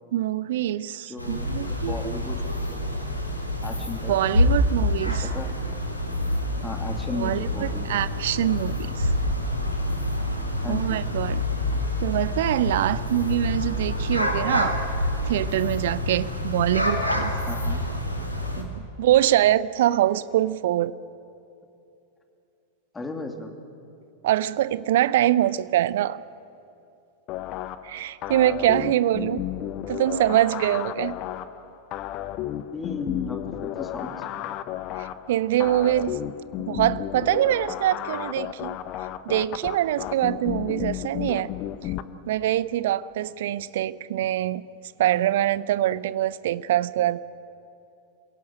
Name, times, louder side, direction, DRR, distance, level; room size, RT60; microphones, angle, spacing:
voice 1, 0.1-2.1 4.1-5.3 7.2-9.1 10.7-11.4 12.0-14.8 15.3-17.3 18.6-20.9 24.2-26.2 27.8-29.5 29.9-31.2 35.0-36.2 36.6-38.8 39.2-41.5 41.8-41.9 42.3-44.6 45.0-47.2, right 13 dB, 55° right, 18 dB, 0.7 m, -24 dB
voice 2, 1.1-3.1 3.6-4.2 5.0-5.5 6.6-7.9 10.6-11.0 17.5-17.8 22.9-23.5 32.7-34.5, left 4 dB, 10° left, 4 dB, 2.7 m, -35 dB
sound 1, 1.2-18.6, left 1 dB, 85° left, 2.9 m, -27 dB
sound 2, 27.3-42.0, left 12 dB, 40° left, 1.0 m, -33 dB
27.5 x 17.0 x 8.7 m, 2.7 s
figure-of-eight pair, 90°, 0 cm